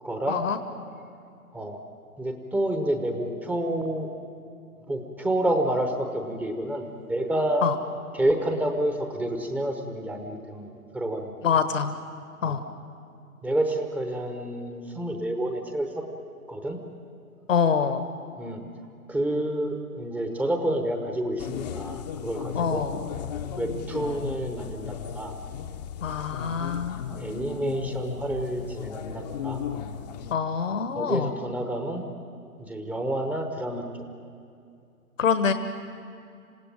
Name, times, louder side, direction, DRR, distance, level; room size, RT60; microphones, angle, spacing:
voice 1, 0.0-0.4 1.5-1.8 2.2-4.1 4.9-7.7 8.1-11.3 12.4-12.6 13.4-16.1 16.5-16.8 18.4-18.6 19.1-22.8 23.6-25.3 27.2-29.6 30.9-32.0 32.6-34.0, right 1 dB, 5° right, 4 dB, 0.9 m, -29 dB
voice 2, 11.4-11.9 12.4-12.6 17.5-18.1 22.5-23.0 26.0-27.0 30.3-31.3 35.2-35.5, left 6 dB, 60° left, 9 dB, 1.4 m, -25 dB
sound 1, 21.4-30.4, left 8 dB, 30° left, 0.8 m, -35 dB
27.0 x 16.5 x 9.0 m, 2.5 s
figure-of-eight pair, 130°, 44 cm